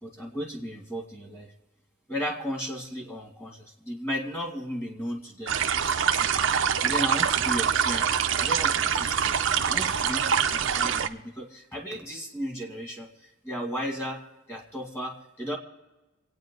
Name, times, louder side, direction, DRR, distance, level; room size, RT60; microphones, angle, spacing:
voice 1, 0.0-1.5 2.1-8.1 8.4-14.2 14.5-15.6, equal, 10° left, 1 dB, 2.0 m, -35 dB
sound 1, 5.5-11.1, right 7 dB, 60° right, 0.6 m, -25 dB
27.0 x 9.2 x 3.8 m, 1.1 s
head